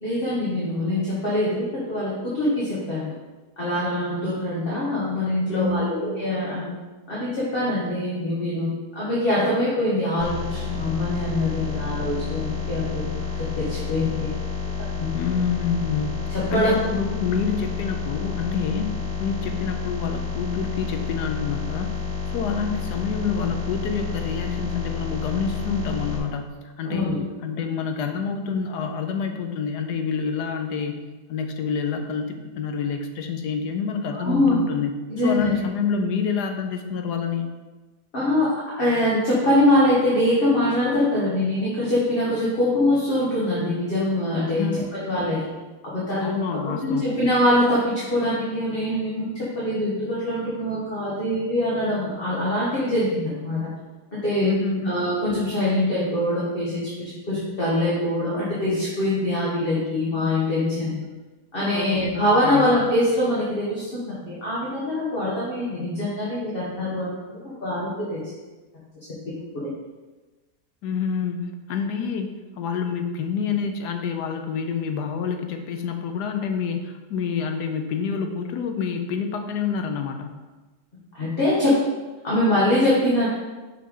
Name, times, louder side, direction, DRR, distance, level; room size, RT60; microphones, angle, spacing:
voice 1, 0.0-3.1 3.6-6.7 7.1-14.3 14.8-15.1 16.3-16.8 26.9-27.2 34.1-34.6 35.2-35.5 38.1-38.5 38.8-45.4 45.9-46.3 46.6-53.6 54.1-54.5 54.9-61.1 61.5-67.1 67.6-68.2 69.3-69.4 81.1-81.8 82.2-83.3, left 1 dB, 35° left, -8 dB, 1.6 m, -23 dB
voice 2, 5.5-6.0 15.1-16.2 16.5-18.9 19.2-21.9 22.3-26.4 26.8-27.1 27.4-34.9 35.2-37.5 44.6-44.8 46.2-47.1 54.4-54.9 61.7-62.7 70.8-80.3, left 6 dB, 80° left, 5 dB, 1.3 m, -27 dB
sound 1, 10.2-26.2, left 6 dB, 60° right, 2.5 m, -30 dB
6.1 x 5.7 x 3.8 m, 1.2 s
omnidirectional pair, 1.7 m